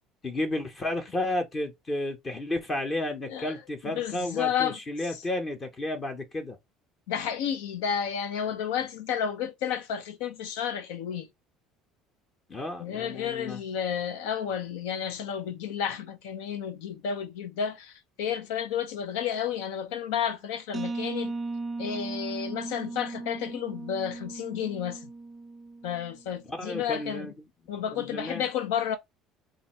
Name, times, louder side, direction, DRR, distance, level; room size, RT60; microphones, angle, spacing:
voice 1, 0.2-6.6 12.5-13.6 26.5-27.3 27.9-28.4, left 1 dB, 25° left, 0.8 m, -32 dB
voice 2, 3.3-4.8 7.1-11.3 12.8-21.3 21.8-25.1 25.8-27.3 27.7-29.0, left 8 dB, 90° left, 0.7 m, -31 dB
sound 1, 20.7-26.3, right 3 dB, 20° right, 0.4 m, -37 dB
2.6 x 2.5 x 4.2 m
cardioid pair, 120°, 0 cm